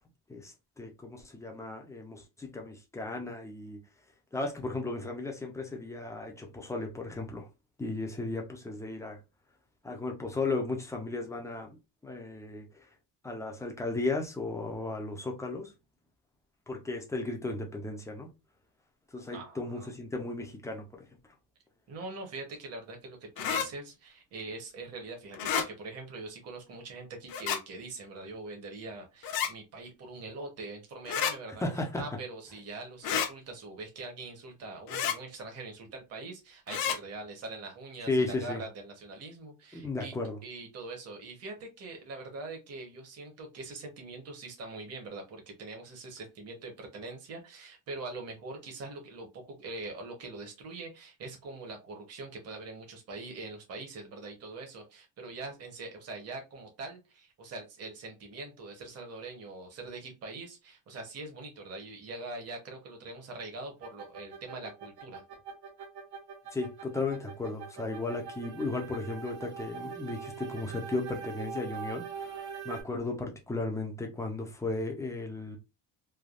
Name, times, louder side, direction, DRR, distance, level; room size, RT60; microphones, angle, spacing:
voice 1, 0.3-3.8 4.3-7.5 7.8-9.2 9.8-11.8 12.0-12.7 13.2-15.7 16.7-18.3 19.1-21.1 31.6-32.0 38.1-38.6 39.7-40.4 66.5-75.6, left 2 dB, 10° left, 0.4 m, -35 dB
voice 2, 19.3-19.9 21.9-31.6 32.0-40.1 40.4-65.2, right 3 dB, 35° right, 0.9 m, -43 dB
sound 1, 23.4-23.7 25.3-25.7 27.3-27.6 29.2-29.5 31.1-31.3 33.0-33.3 34.9-35.2 36.7-37.0, left 8 dB, 60° left, 0.6 m, -30 dB
sound 2, 63.8-72.8, right 6 dB, 65° right, 1.3 m, -42 dB
3.3 x 2.2 x 2.3 m
cardioid pair, 165°, 41 cm